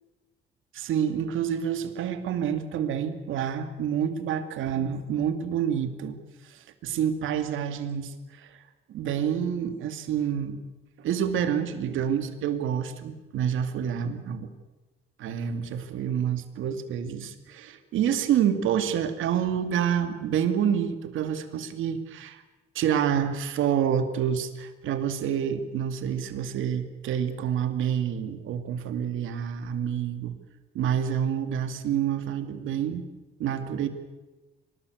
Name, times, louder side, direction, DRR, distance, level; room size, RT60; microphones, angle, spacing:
voice 1, 0.7-6.2 6.4-8.5 8.9-10.6 11.0-14.5 15.2-22.4 22.7-30.3 30.7-33.0 33.4-33.9, right 8 dB, 85° right, 9 dB, 2.4 m, -28 dB
23.5 x 20.0 x 8.0 m, 1.1 s
cardioid pair, 90°, 20 cm